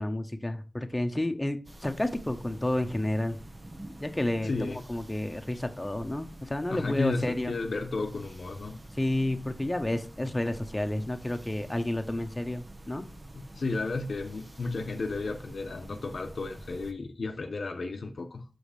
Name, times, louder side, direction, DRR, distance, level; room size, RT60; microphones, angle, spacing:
voice 1, 0.0-3.4 4.0-7.5 9.0-13.1, left 1 dB, 20° left, 1.1 m, -30 dB
sound 1, 1.6-16.9, right 1 dB, 35° right, 1.2 m, -48 dB
voice 2, 4.4-4.8 6.7-8.8 13.5-18.4, left 3 dB, 80° left, 0.8 m, -33 dB
6.4 x 5.0 x 4.9 m
cardioid pair, 45°, 0 cm